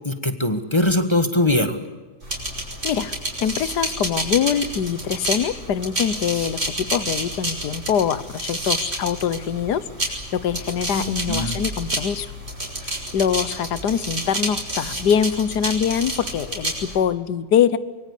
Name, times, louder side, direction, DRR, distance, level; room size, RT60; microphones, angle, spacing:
voice 1, 0.0-1.9 11.0-11.6, left 1 dB, 15° left, 7 dB, 1.5 m, -22 dB
sound 1, 2.2-17.0, right 1 dB, 45° right, 5.5 m, -29 dB
voice 2, 3.4-12.3 12.8-17.8, left 8 dB, 75° left, 15 dB, 1.6 m, -23 dB
24.5 x 23.0 x 8.3 m, 1.3 s
omnidirectional pair, 1.8 m